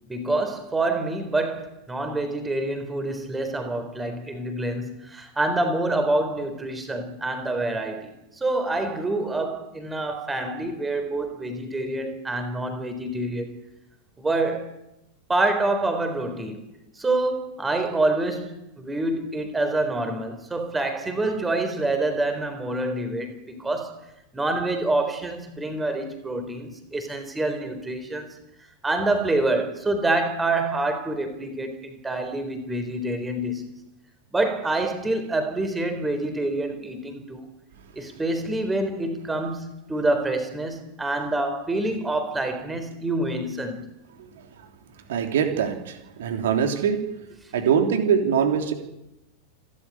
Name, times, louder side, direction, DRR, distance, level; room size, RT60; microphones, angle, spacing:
voice 1, 0.1-8.1 8.4-13.6 14.2-14.7 15.3-16.6 17.0-23.9 24.3-28.3 28.8-33.7 34.3-37.4 38.0-43.9, right 2 dB, 10° right, 8 dB, 4.1 m, -26 dB
voice 2, 45.1-47.0 47.5-48.7, right 7 dB, 60° right, 6 dB, 3.2 m, -23 dB
28.5 x 12.5 x 10.0 m, 0.91 s
figure-of-eight pair, 90°, 0 cm